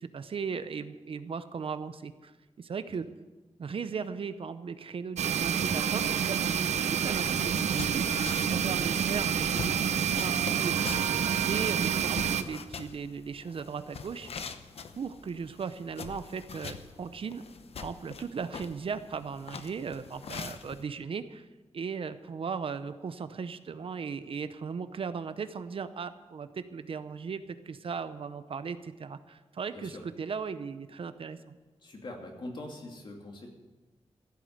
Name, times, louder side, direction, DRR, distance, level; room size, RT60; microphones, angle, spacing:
voice 1, 0.0-2.3 2.6-3.1 3.6-8.0 8.5-14.3 15.0-17.4 17.8-21.5 21.7-31.6, right 6 dB, 55° right, 12 dB, 0.6 m, -37 dB
sound 1, 5.2-12.4, right 8 dB, 90° right, 0.7 m, -28 dB
sound 2, 6.9-20.8, left 5 dB, 60° left, 0.8 m, -44 dB
voice 2, 31.8-33.5, left 1 dB, 45° left, 1 dB, 2.5 m, -42 dB
15.0 x 8.4 x 7.9 m, 1.2 s
wide cardioid pair, 180°, 11 cm